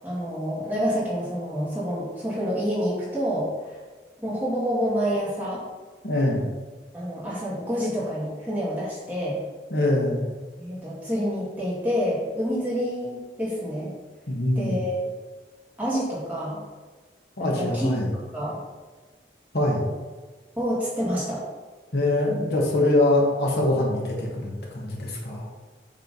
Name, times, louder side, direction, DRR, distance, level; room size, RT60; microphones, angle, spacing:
voice 1, 0.0-3.8 4.2-5.6 6.9-9.4 10.6-13.9 14.6-15.1 15.8-16.6 17.4-17.9 18.3-18.6 20.6-21.5, equal, 10° right, -8 dB, 2.2 m, -28 dB
voice 2, 6.0-6.4 9.7-10.3 14.3-14.8 17.4-18.1 19.5-19.8 21.9-25.4, left 1 dB, 70° left, -3 dB, 1.7 m, -23 dB
7.5 x 3.8 x 5.4 m, 1.3 s
head